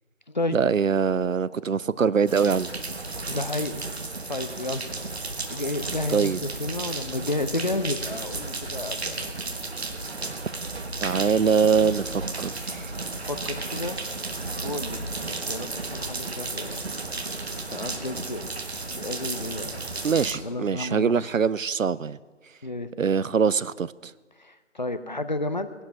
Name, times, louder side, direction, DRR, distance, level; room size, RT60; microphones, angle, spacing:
voice 1, 0.5-2.7 6.1-6.4 11.0-12.9 20.0-22.2 23.0-24.1, right 6 dB, 90° right, 20 dB, 0.6 m, -23 dB
sound 1, 2.3-20.3, right 3 dB, 55° right, 1.5 m, -33 dB
voice 2, 3.3-3.8 4.3-4.8 5.2-9.4 13.3-14.0 14.6-16.9 17.7-18.4 18.9-19.8 20.4-21.1 22.6-22.9 24.4-25.7, left 2 dB, 35° left, 11 dB, 0.7 m, -32 dB
19.0 x 11.5 x 6.0 m, 1.4 s
figure-of-eight pair, 160°, 38 cm